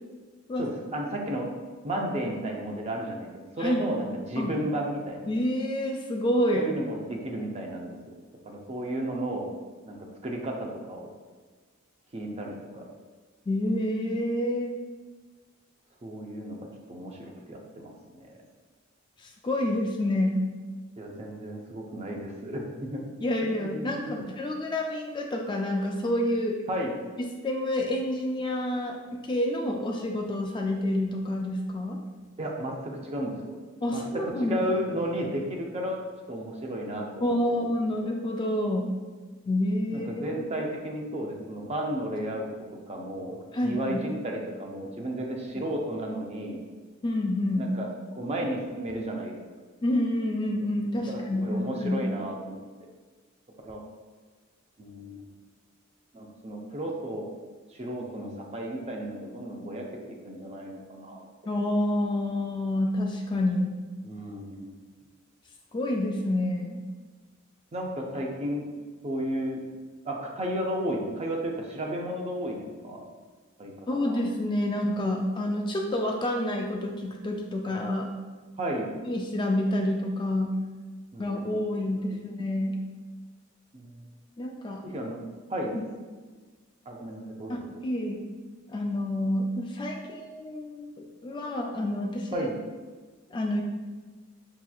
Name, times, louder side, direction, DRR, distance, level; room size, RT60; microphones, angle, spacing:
voice 1, 0.6-1.5 1.8-5.3 6.5-8.1 8.5-9.5 9.9-11.1 12.1-12.8 16.0-16.6 16.9-18.3 21.0-23.0 23.5-24.1 26.7-26.9 32.4-33.5 33.9-36.0 36.3-37.7 39.9-42.5 42.9-46.6 47.6-49.4 51.1-52.6 53.6-53.8 54.8-55.2 56.1-57.3 57.7-61.2 64.0-64.7 67.7-68.7 69.0-69.6 70.0-73.0 73.6-74.2 78.6-78.9 81.1-81.5 83.7-84.1 84.8-85.2 85.5-85.8 86.9-87.7 92.3-92.6, right 1 dB, 30° right, 0 dB, 0.6 m, -33 dB
voice 2, 5.3-6.7 13.5-14.8 19.2-20.4 23.2-26.6 27.4-32.0 33.8-34.6 37.2-38.9 39.5-40.2 43.5-44.0 45.5-45.6 47.0-47.7 49.8-52.1 61.5-63.7 65.7-66.8 73.9-78.1 79.0-80.5 81.2-82.7 84.4-84.8 85.7-85.9 87.5-88.3 88.7-92.5 93.3-93.6, left 1 dB, 25° left, 1 dB, 0.3 m, -28 dB
5.8 x 2.9 x 2.3 m, 1.4 s
head